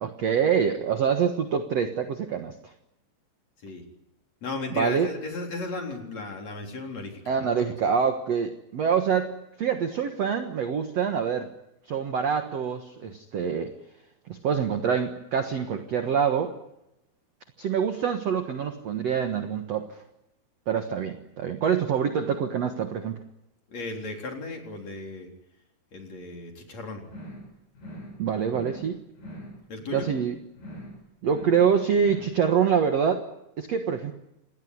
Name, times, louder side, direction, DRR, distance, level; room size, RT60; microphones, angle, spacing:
voice 1, 0.0-2.7 4.8-5.1 7.3-11.5 11.9-13.7 14.3-16.5 17.6-20.0 20.7-23.2 28.2-29.0 29.9-30.3 31.2-33.3 33.6-34.1, right 7 dB, 70° right, 6 dB, 1.5 m, -25 dB
voice 2, 4.4-7.8 23.7-25.3 25.9-27.1 29.7-30.1, left 3 dB, 40° left, 2 dB, 4.6 m, -35 dB
sound 1, 27.1-27.5 27.7-28.2 28.4-28.9 29.1-29.6 29.8-30.3 30.5-31.0 31.2-31.7 31.9-32.4, equal, 60° left, 9.7 m, -42 dB
27.5 x 19.0 x 9.6 m, 0.86 s
omnidirectional pair, 5.2 m